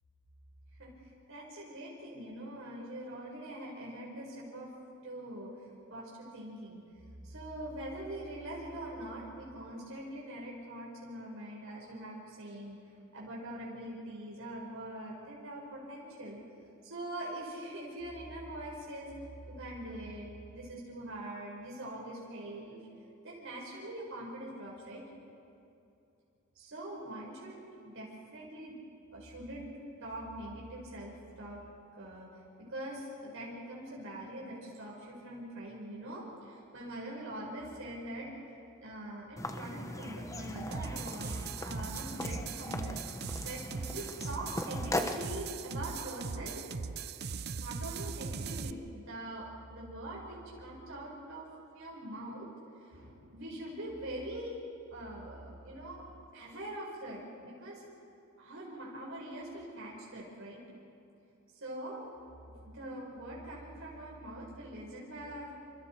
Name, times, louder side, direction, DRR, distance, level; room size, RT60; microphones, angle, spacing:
voice 1, 0.8-4.7 5.0-6.8 7.2-16.4 16.8-22.9 23.2-25.0 26.5-27.6 27.8-28.7 29.1-29.7 30.0-31.6 32.0-32.3 32.6-43.0 43.4-46.7 47.6-51.5 51.7-52.5 52.8-54.6 54.9-56.0 56.3-57.8 58.4-60.6 61.5-62.0 62.6-65.6, right 1 dB, 65° right, -4 dB, 5.0 m, -43 dB
sound 1, 39.4-45.3, left 1 dB, 15° left, 1.0 m, -39 dB
sound 2, 40.7-48.7, right 5 dB, 50° right, 0.6 m, -40 dB
28.0 x 26.5 x 4.6 m, 2.7 s
head